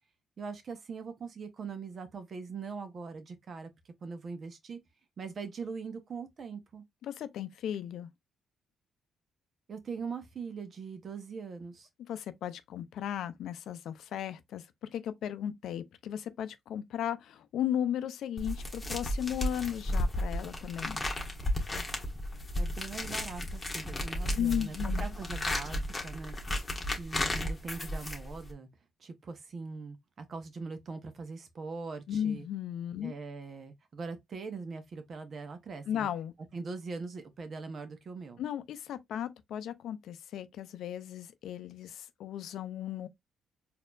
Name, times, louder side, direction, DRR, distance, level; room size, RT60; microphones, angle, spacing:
voice 1, 0.4-3.7 4.0-4.8 5.2-6.8 9.7-11.9 22.5-26.4 27.0-28.7 29.0-32.5 33.0-36.1 36.5-38.4, right 4 dB, 50° right, 1.0 m, -41 dB
voice 2, 7.0-8.1 12.0-21.0 24.3-25.0 32.1-33.1 35.9-36.3 38.4-43.1, left 10 dB, 75° left, 0.5 m, -35 dB
sound 1, 18.4-28.5, left 1 dB, 20° left, 1.4 m, -34 dB
4.3 x 2.8 x 2.5 m
cardioid pair, 90°, 0 cm